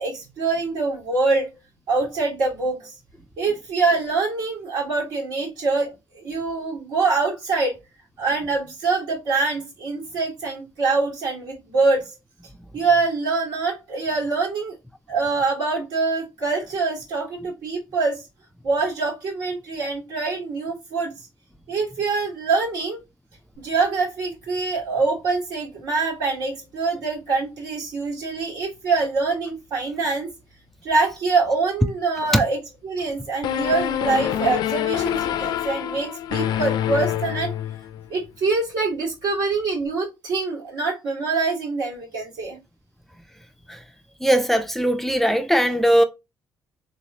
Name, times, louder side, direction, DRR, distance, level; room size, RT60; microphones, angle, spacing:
voice 1, 0.0-1.5 1.9-2.9 3.4-7.8 8.2-12.1 12.7-14.8 15.1-18.2 18.6-21.1 21.7-23.0 23.6-30.3 30.8-32.6 32.8-37.5 38.1-42.6, right 4 dB, 80° right, 2.0 m, -24 dB
sound 1, 33.4-38.1, left 11 dB, 80° left, 0.3 m, -26 dB
voice 2, 44.2-46.0, equal, 5° left, 0.3 m, -19 dB
3.5 x 3.1 x 2.7 m
cardioid pair, 125°, 7 cm